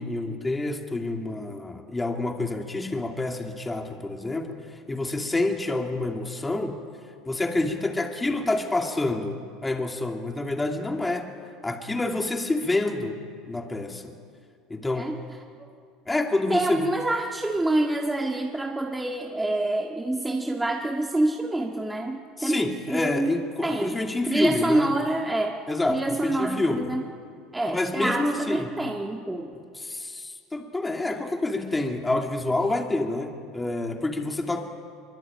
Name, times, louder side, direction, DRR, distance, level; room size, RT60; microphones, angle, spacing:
voice 1, 0.0-4.6 4.9-6.8 7.3-11.3 11.6-13.2 13.5-14.1 14.7-15.1 16.1-16.9 22.4-24.9 25.7-26.9 27.7-28.7 29.7-34.8, left 2 dB, 10° left, 3 dB, 2.5 m, -28 dB
voice 2, 16.5-23.3 23.6-24.0 24.3-25.6 25.9-27.0 27.5-29.5, right 2 dB, 10° right, 1 dB, 1.8 m, -26 dB
23.5 x 23.0 x 8.8 m, 2.3 s
supercardioid pair, 110°, 0 cm